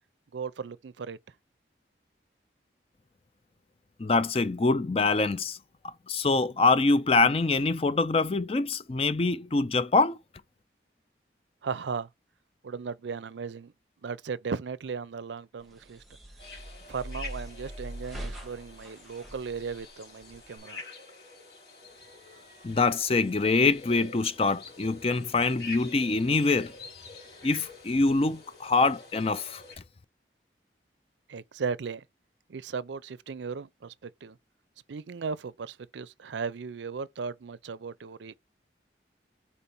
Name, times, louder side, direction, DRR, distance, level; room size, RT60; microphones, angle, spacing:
voice 1, 0.3-1.2 11.6-12.1 12.6-13.7 14.0-16.0 16.9-20.8 31.3-32.0 32.5-34.4 34.9-38.4, right 5 dB, 85° right, 0.5 m, -36 dB
voice 2, 4.0-5.6 5.8-10.2 22.6-26.7 27.4-29.6, left 3 dB, 30° left, 0.4 m, -25 dB
sound 1, 15.6-20.6, right 1 dB, ahead, 1.6 m, -42 dB
sound 2, 16.4-29.8, left 3 dB, 60° left, 3.2 m, -47 dB
4.3 x 4.3 x 5.3 m
head